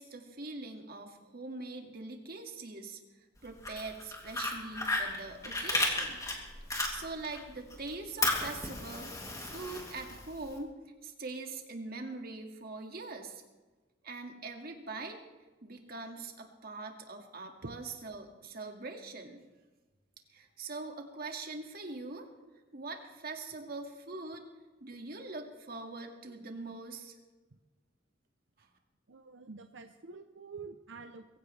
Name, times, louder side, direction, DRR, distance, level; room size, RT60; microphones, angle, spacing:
voice 1, 0.0-3.0 3.4-6.2 6.9-9.1 9.4-13.4 14.0-15.2 15.6-19.4 20.3-22.3 22.7-24.5 24.8-27.1 28.6-28.7, right 3 dB, 55° right, 3 dB, 2.1 m, -43 dB
Fire, 3.5-7.4 7.7-10.5, left 2 dB, 20° left, 2.8 m, -34 dB
voice 2, 29.1-31.4, right 4 dB, 90° right, 7 dB, 0.8 m, -47 dB
22.5 x 16.0 x 3.4 m, 1.3 s
head